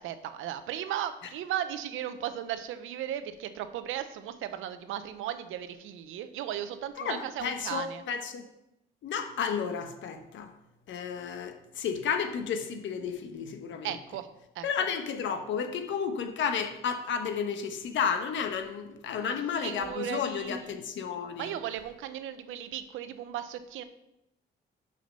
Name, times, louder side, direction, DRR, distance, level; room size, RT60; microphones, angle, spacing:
voice 1, 0.0-8.0 13.8-14.3 14.5-14.7 19.1-19.3 19.6-20.6 21.4-23.8, right 10 dB, 85° right, 11 dB, 0.7 m, -36 dB
voice 2, 7.0-8.4 9.0-10.5 10.9-13.9 14.6-21.6, left 7 dB, 70° left, 7 dB, 1.1 m, -32 dB
6.2 x 5.7 x 6.6 m, 0.86 s
cardioid pair, 90°, 20 cm